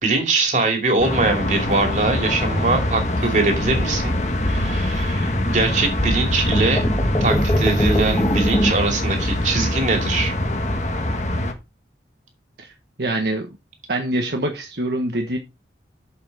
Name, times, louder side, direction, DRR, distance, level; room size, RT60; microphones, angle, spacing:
voice 1, 0.0-4.2 4.5-6.9 7.2-10.3, right 3 dB, 45° right, 2.6 m, -22 dB
sound 1, 1.0-11.5, left 1 dB, 40° left, 1.4 m, -24 dB
sound 2, 3.7-8.7, equal, 20° left, 1.6 m, -23 dB
voice 2, 13.0-13.5 13.9-15.4, right 1 dB, 70° right, 1.3 m, -24 dB
8.4 x 7.0 x 4.0 m
head